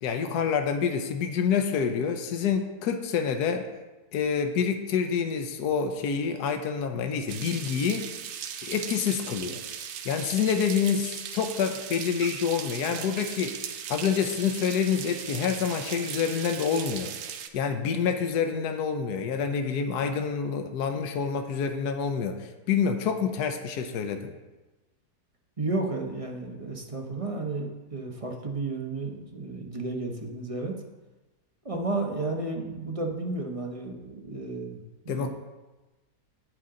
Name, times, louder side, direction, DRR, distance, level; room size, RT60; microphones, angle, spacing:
voice 1, 0.0-3.7 4.1-8.1 8.6-9.6 10.0-17.1 17.5-24.3 35.1-35.3, left 6 dB, 80° left, 6 dB, 1.3 m, -27 dB
sound 1, 7.3-17.5, right 8 dB, 85° right, 1.3 m, -38 dB
voice 2, 25.6-30.7 31.6-35.3, right 2 dB, 25° right, 1 dB, 0.8 m, -32 dB
9.6 x 8.7 x 3.8 m, 1.1 s
omnidirectional pair, 1.7 m